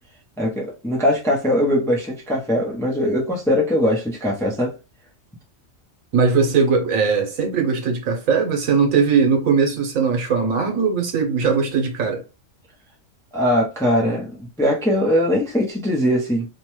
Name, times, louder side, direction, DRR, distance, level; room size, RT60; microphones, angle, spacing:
voice 1, 0.4-4.7 13.3-16.5, equal, 5° left, 0.5 m, -21 dB
voice 2, 6.1-12.2, right 5 dB, 85° right, 1.3 m, -19 dB
2.9 x 2.2 x 3.0 m
omnidirectional pair, 1.4 m